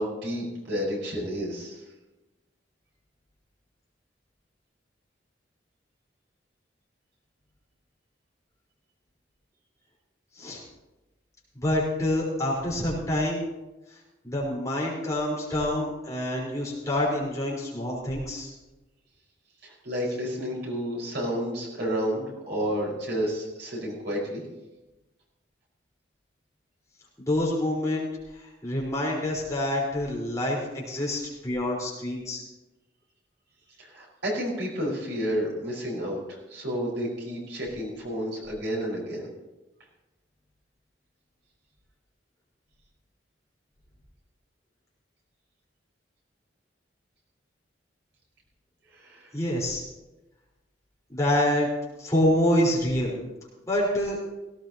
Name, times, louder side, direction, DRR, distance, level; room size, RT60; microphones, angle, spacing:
voice 1, 0.0-1.8 19.6-24.4 33.8-36.2 36.5-39.3 48.9-49.3, equal, 65° right, -3 dB, 5.3 m, -31 dB
voice 2, 11.5-13.4 14.2-18.5 27.2-28.1 28.3-32.4 49.3-49.8 51.1-51.7 52.0-53.2 53.7-54.2, left 1 dB, 15° left, -6 dB, 4.6 m, -27 dB
18.0 x 17.5 x 3.0 m, 1.0 s
head